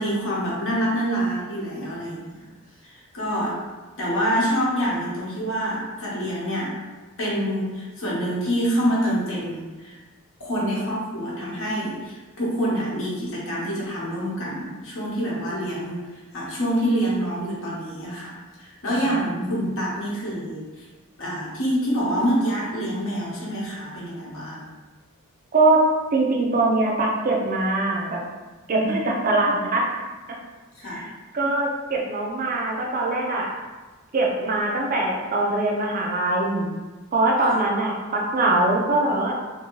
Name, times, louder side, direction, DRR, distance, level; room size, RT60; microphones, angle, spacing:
voice 1, 0.0-2.5 2.8-3.6 4.0-6.7 7.2-10.0 10.4-16.0 16.3-20.6 21.2-24.7 30.8-31.0 31.4-31.5 37.5-37.6, equal, 60° left, -6 dB, 0.8 m, -26 dB
voice 2, 19.0-19.5 25.5-28.2 28.7-29.8 30.8-31.1 31.3-33.5 34.1-36.7 37.1-39.4, right 2 dB, 40° right, -1 dB, 0.5 m, -22 dB
2.7 x 2.6 x 2.9 m, 1.3 s
head